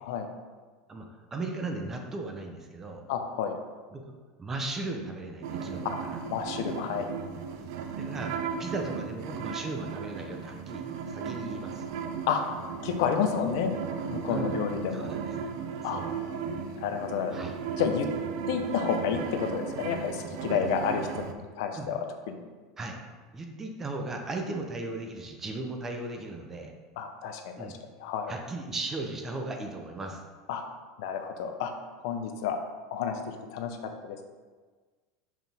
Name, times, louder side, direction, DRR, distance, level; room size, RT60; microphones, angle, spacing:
voice 1, 0.9-3.0 3.9-4.0 4.4-6.2 7.6-7.7 8.0-8.3 8.6-10.8 11.1-11.8 14.3-14.6 14.9-15.3 15.8-16.1 17.3-17.5 20.4-20.6 21.7-21.9 22.8-23.0 23.3-26.7 27.6-27.7 28.3-30.2, right 2 dB, 15° right, 3 dB, 0.6 m, -36 dB
voice 2, 3.1-3.5 5.8-6.0 6.3-7.1 12.3-12.4 12.8-13.8 14.1-15.1 15.8-16.0 16.8-17.5 17.8-18.1 18.5-21.0 21.6-22.4 27.0-27.7 28.0-28.3 30.5-30.6 31.0-31.7 32.0-32.6 32.9-33.2 33.5-33.8 34.0-34.2, left 7 dB, 70° left, 5 dB, 0.7 m, -30 dB
sound 1, 5.4-21.3, right 6 dB, 70° right, 0.5 m, -36 dB
5.9 x 4.6 x 3.5 m, 1.4 s
supercardioid pair, 150°, 2 cm